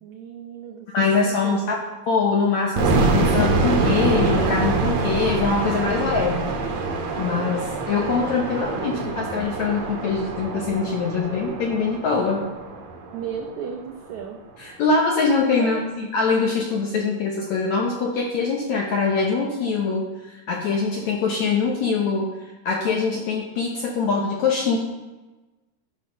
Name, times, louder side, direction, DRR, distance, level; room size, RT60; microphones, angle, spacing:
voice 1, 0.0-2.0 8.5-9.3 13.1-14.4 15.6-15.8, right 7 dB, 85° right, 2 dB, 1.6 m, -36 dB
voice 2, 0.9-1.8 2.1-6.5 7.2-12.5 14.6-22.3 22.7-24.8, left 4 dB, 70° left, -1 dB, 1.8 m, -23 dB
sound 1, 2.8-13.6, right 3 dB, 70° right, 2.7 m, -25 dB
13.0 x 5.8 x 5.8 m, 1.1 s
omnidirectional pair, 4.6 m